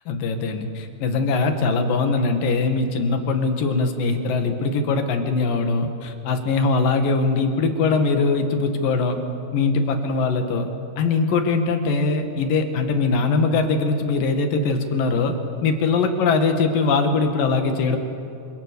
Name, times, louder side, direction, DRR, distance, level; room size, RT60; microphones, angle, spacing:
voice 1, 0.1-9.2 9.5-10.7 11.0-15.3 15.6-18.0, left 4 dB, 85° left, 5 dB, 3.6 m, -21 dB
26.5 x 25.5 x 6.9 m, 2.7 s
omnidirectional pair, 3.9 m